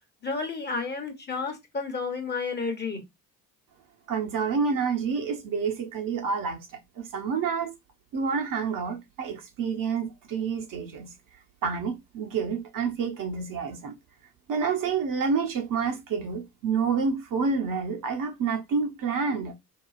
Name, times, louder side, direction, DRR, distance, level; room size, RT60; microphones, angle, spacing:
voice 1, 0.2-3.0, left 4 dB, 20° left, 1.0 m, -31 dB
voice 2, 4.1-6.7 7.0-7.7 8.1-11.1 11.6-13.9 14.5-19.5, right 5 dB, 45° right, 0.9 m, -28 dB
4.7 x 2.3 x 2.4 m
figure-of-eight pair, 55°, 47 cm